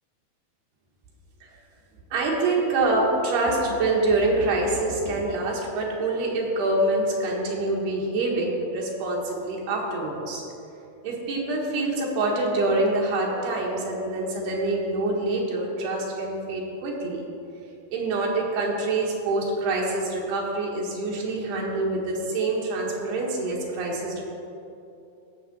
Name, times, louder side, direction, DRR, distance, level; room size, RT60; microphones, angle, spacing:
voice 1, 2.1-10.4 11.0-17.2 17.9-24.2, right 2 dB, 85° right, -2 dB, 3.5 m, -26 dB
16.5 x 6.2 x 4.3 m, 2.7 s
omnidirectional pair, 4.5 m